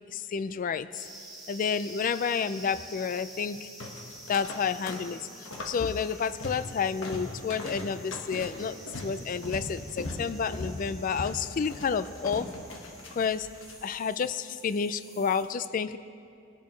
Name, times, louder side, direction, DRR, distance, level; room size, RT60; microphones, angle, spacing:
voice 1, 0.1-0.9 1.5-3.7 4.3-5.2 5.6-12.5 13.1-13.5 13.8-16.0, left 6 dB, 40° left, 14 dB, 0.3 m, -30 dB
sound 1, 0.9-15.4, right 1 dB, ahead, 3.4 m, -49 dB
sound 2, 3.8-4.6 4.9-5.8 6.1-6.7 7.0-13.7, left 2 dB, 70° left, 1.5 m, -39 dB
20.5 x 11.0 x 3.2 m, 2.4 s
head